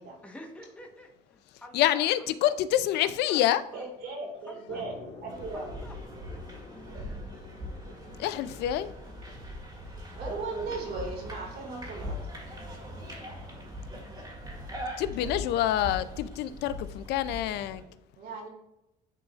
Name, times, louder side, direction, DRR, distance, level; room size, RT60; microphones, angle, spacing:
voice 1, 0.2-2.1 2.4-2.5 3.0-3.4 3.7-3.8 4.4-4.8 5.5-5.9 6.3-6.9, left 1 dB, 5° left, 1 dB, 1.1 m, -49 dB
voice 2, 1.7-3.6 8.2-8.9 13.0-13.1 15.0-17.8, left 12 dB, 80° left, 14 dB, 0.4 m, -27 dB
voice 3, 3.7-5.0 5.2-5.8 10.1-12.2 18.2-18.5, right 3 dB, 70° right, 1 dB, 2.1 m, -37 dB
sound 1, 4.7-11.0, left 3 dB, 45° left, 1.5 m, -50 dB
sound 2, 5.3-17.8, equal, 25° right, 2.1 m, -41 dB
10.5 x 3.8 x 2.4 m, 0.88 s
cardioid pair, 110°, 17 cm